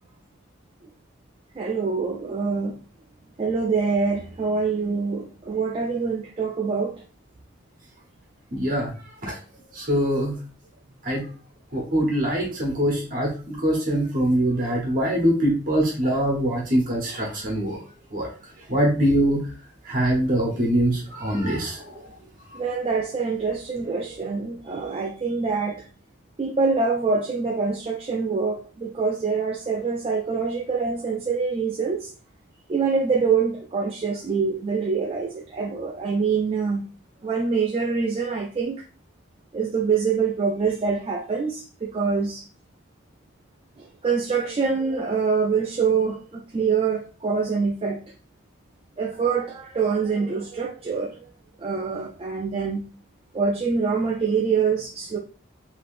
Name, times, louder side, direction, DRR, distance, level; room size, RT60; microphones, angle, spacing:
voice 1, 1.6-2.7 3.4-6.9 14.8-14.9 22.5-25.8 26.4-32.1 32.7-36.8 37.2-38.7 39.5-42.4 43.8-48.0 49.0-51.1 51.6-52.8 53.3-55.2, right 5 dB, 30° right, 0.3 m, -25 dB
voice 2, 8.5-8.9 9.2-9.3 9.8-10.3 11.1-11.2 11.7-17.8 18.1-18.3 18.7-19.4 19.9-21.8, right 1 dB, 45° right, 0.9 m, -23 dB
3.5 x 2.8 x 2.4 m
head